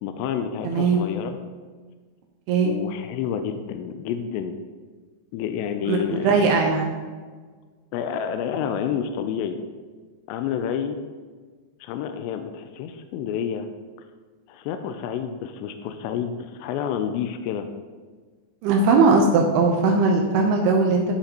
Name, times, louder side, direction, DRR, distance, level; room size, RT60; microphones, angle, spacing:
voice 1, 0.0-1.4 2.6-4.6 5.3-6.4 7.9-9.6 10.3-11.0 11.8-13.7 14.5-17.7, left 8 dB, 85° left, 7 dB, 2.4 m, -29 dB
voice 2, 0.6-1.0 2.5-2.7 5.9-7.0 18.6-21.0, right 4 dB, 85° right, 1 dB, 2.3 m, -19 dB
11.5 x 5.8 x 2.9 m, 1.5 s
omnidirectional pair, 5.4 m